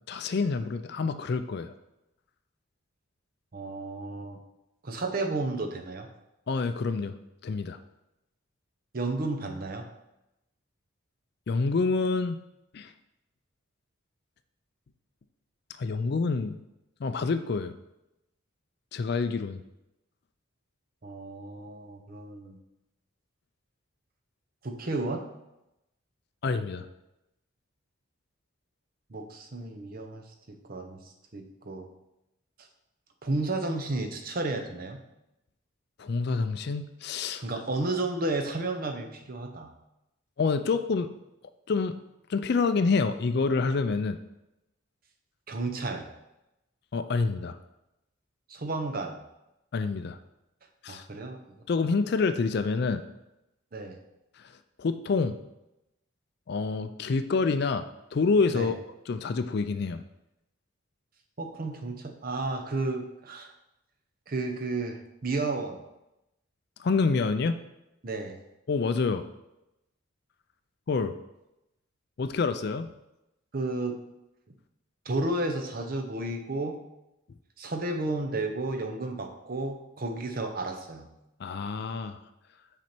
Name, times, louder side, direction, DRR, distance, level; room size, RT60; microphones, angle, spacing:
voice 1, 0.0-1.7 6.5-7.2 7.4-7.8 11.5-12.4 12.7-12.9 15.8-16.6 17.0-17.7 18.9-19.6 26.4-26.9 36.0-37.4 40.4-41.1 41.7-41.9 42.3-44.2 46.9-47.6 49.7-50.2 50.8-51.0 51.7-53.0 54.4-54.5 54.8-55.4 56.5-57.8 58.1-58.7 59.1-60.0 66.8-67.6 68.7-69.3 70.9-71.1 72.2-72.9 81.4-82.2, left 4 dB, 50° left, 10 dB, 0.4 m, -27 dB
voice 2, 3.5-4.4 4.8-6.1 8.9-9.8 21.0-22.6 24.6-25.2 29.1-31.0 31.3-31.9 33.2-35.0 37.4-39.7 45.5-46.1 48.5-49.2 50.9-51.4 53.7-54.0 58.5-58.7 61.4-63.5 64.3-65.8 68.0-68.4 73.5-74.0 75.1-76.8 77.6-81.1, right 2 dB, 45° right, 4 dB, 0.7 m, -32 dB
6.2 x 4.2 x 4.4 m, 0.90 s
head